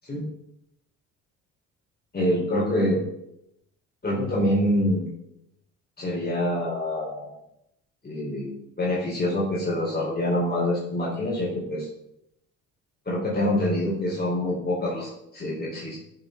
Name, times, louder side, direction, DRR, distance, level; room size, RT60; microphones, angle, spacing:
voice 1, 2.1-3.0 4.0-5.1 6.0-7.3 8.0-11.9 13.0-16.0, left 1 dB, 25° left, -6 dB, 4.9 m, -26 dB
14.0 x 7.1 x 4.1 m, 0.81 s
hypercardioid pair, 60°, 37 cm